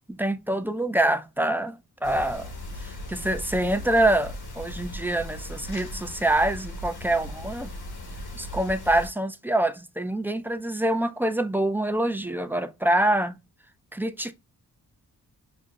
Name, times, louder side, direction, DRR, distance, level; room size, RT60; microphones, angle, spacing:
voice 1, 0.1-2.5 2.8-7.7 8.3-13.4 13.9-14.3, right 1 dB, 5° right, 0.5 m, -25 dB
sound 1, 2.0-9.1, left 1 dB, 75° left, 1.3 m, -38 dB
6.1 x 2.1 x 2.4 m
cardioid pair, 45°, 38 cm